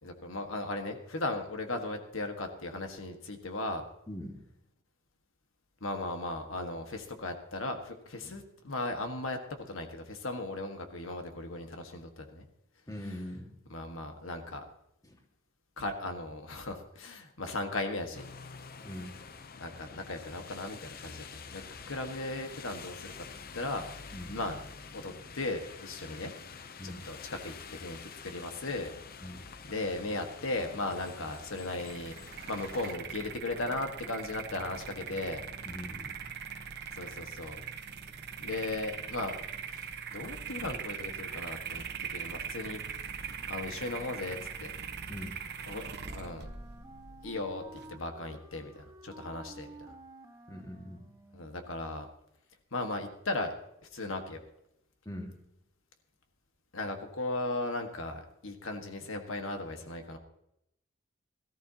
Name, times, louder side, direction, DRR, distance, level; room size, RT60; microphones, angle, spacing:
voice 1, 0.0-3.8 5.8-9.4 9.7-12.4 13.7-14.6 15.8-18.3 19.6-21.2 21.5-21.6 21.9-23.1 23.5-23.8 24.3-24.5 24.9-26.3 26.8-28.9 29.7-35.4 36.9-37.6 38.4-39.4 39.7-41.8 42.1-42.8 43.5-44.7 45.7-45.9 46.1-46.5 47.2-49.7 51.3-52.1 52.7-53.5 53.9-54.4 56.7-60.2, left 2 dB, 85° left, 5 dB, 1.6 m, -37 dB
voice 2, 4.1-4.4 8.2-8.3 12.9-13.5 15.0-15.2 18.8-19.1 24.1-24.3 26.8-27.0 29.2-29.4 35.7-36.2 45.1-45.4 50.5-51.1 55.1-55.3, equal, 20° left, 2 dB, 1.9 m, -42 dB
sound 1, 18.1-33.0, left 5 dB, 50° left, 0.8 m, -47 dB
sound 2, 31.6-47.9, right 6 dB, 55° right, 1.1 m, -41 dB
Wind instrument woodwind instrument, 45.7-51.6, right 2 dB, 15° right, 1.4 m, -52 dB
18.0 x 14.5 x 2.9 m, 0.80 s
head